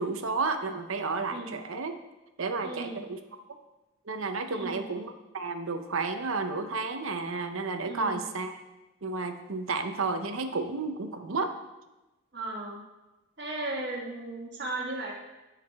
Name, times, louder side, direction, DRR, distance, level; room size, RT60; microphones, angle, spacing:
voice 1, 0.0-1.9 2.4-3.2 4.1-8.6 9.0-11.5, right 3 dB, 75° right, 7 dB, 0.7 m, -32 dB
voice 2, 2.6-3.0 4.5-4.8 7.8-8.2 12.3-12.8 13.4-15.1, right 2 dB, 55° right, -2 dB, 1.6 m, -36 dB
14.5 x 4.9 x 3.5 m, 1.1 s
head